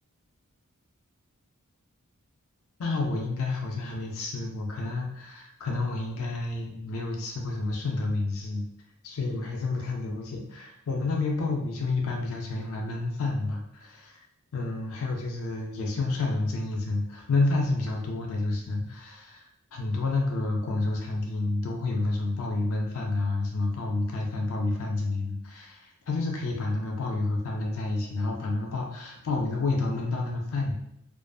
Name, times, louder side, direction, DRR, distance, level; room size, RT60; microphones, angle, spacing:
voice 1, 2.8-8.6 9.0-14.2 14.5-30.7, left 3 dB, 65° left, 0 dB, 0.4 m, -29 dB
2.5 x 2.3 x 2.3 m, 0.79 s
head